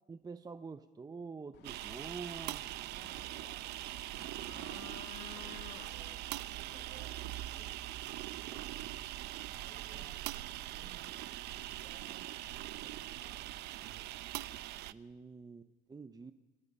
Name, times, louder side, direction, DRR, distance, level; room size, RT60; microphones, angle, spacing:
voice 1, 0.1-2.6 14.9-16.3, right 4 dB, 20° right, 10 dB, 0.9 m, -46 dB
sound 1, 1.5-9.0, left 9 dB, 75° left, 2.2 m, -56 dB
sound 2, 1.6-14.9, right 15 dB, 85° right, 0.8 m, -42 dB
voice 2, 2.8-5.0 5.3-8.9 9.5-14.0, right 4 dB, 70° right, 3 dB, 7.3 m, -59 dB
30.0 x 27.0 x 5.5 m, 1.1 s
cardioid pair, 110°, 17 cm